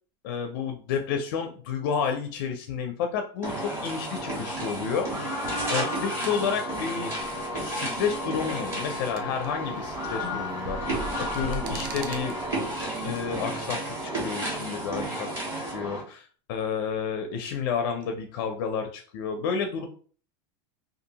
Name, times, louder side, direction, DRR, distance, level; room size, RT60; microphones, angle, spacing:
voice 1, 0.2-5.1 5.7-7.1 7.6-12.3 13.0-15.3 15.5-19.9, left 6 dB, 55° left, 5 dB, 0.4 m, -31 dB
sound 1, 3.4-16.0, right 1 dB, 20° right, 1.4 m, -32 dB
sound 2, 7.2-13.2, right 4 dB, 60° right, 0.5 m, -41 dB
2.6 x 2.5 x 2.8 m, 0.42 s
supercardioid pair, 165°, 14 cm